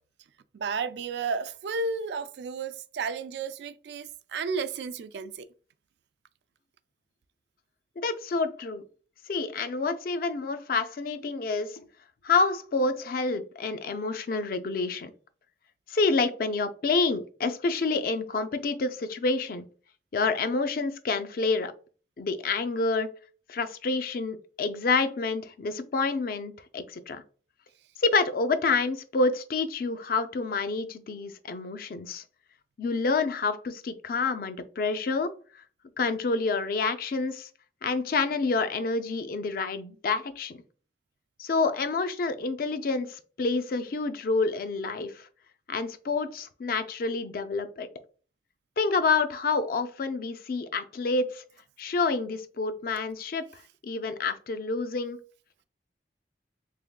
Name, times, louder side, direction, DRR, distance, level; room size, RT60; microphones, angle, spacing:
voice 1, 0.5-5.4, right 4 dB, 75° right, 0.3 m, -32 dB
voice 2, 8.0-8.8 9.3-11.8 12.2-15.1 15.9-19.6 20.1-21.7 22.2-23.1 23.5-27.2 28.0-32.2 32.8-35.6 36.0-37.5 37.8-40.6 41.4-45.3 45.7-47.9 48.8-51.4 51.8-55.2, left 4 dB, 55° left, 0.4 m, -28 dB
3.5 x 3.4 x 2.2 m
head